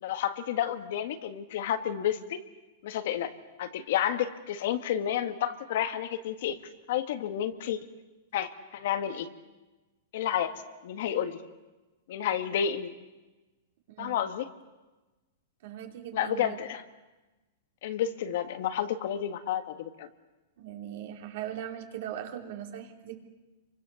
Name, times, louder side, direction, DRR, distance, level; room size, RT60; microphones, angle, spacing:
voice 1, 0.0-2.4 2.8-3.3 3.6-6.6 6.9-7.8 8.3-9.3 10.1-10.5 10.8-11.4 12.1-12.9 14.0-14.5 16.1-16.8 17.8-20.1, left 10 dB, 50° left, 8 dB, 1.7 m, -30 dB
voice 2, 15.6-16.6 20.6-23.2, right 10 dB, 50° right, 3 dB, 3.4 m, -39 dB
30.0 x 24.5 x 7.1 m, 1.1 s
supercardioid pair, 170°, 0 cm